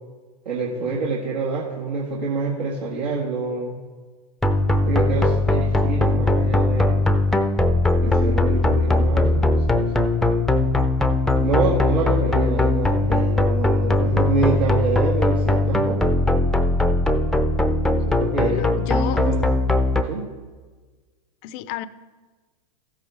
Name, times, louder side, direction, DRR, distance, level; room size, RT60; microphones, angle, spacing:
voice 1, 0.5-3.8 4.9-7.0 8.0-9.9 11.4-16.0 18.1-18.7 19.0-19.4 20.1-20.3, right 4 dB, 80° right, -5 dB, 1.8 m, -26 dB
sound 1, 4.4-20.0, left 2 dB, ahead, 0.6 m, -20 dB
voice 2, 18.3-19.3 21.4-21.9, left 11 dB, 45° left, 15 dB, 0.6 m, -31 dB
15.0 x 8.1 x 3.4 m, 1.4 s
hypercardioid pair, 110°, 21 cm